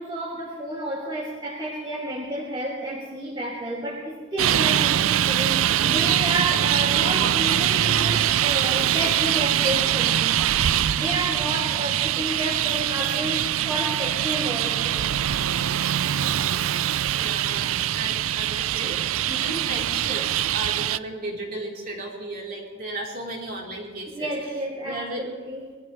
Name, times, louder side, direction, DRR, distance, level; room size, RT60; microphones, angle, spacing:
voice 1, 0.0-10.3 11.0-15.1 24.1-25.6, right 1 dB, 20° right, -6 dB, 2.9 m, -31 dB
Traffic noise roadway noise, 4.4-21.0, right 11 dB, 80° right, 0.4 m, -23 dB
voice 2, 17.1-19.0 19.2-24.5 24.8-25.2, right 1 dB, 45° right, -2 dB, 4.5 m, -35 dB
22.5 x 14.5 x 3.5 m, 1.4 s
head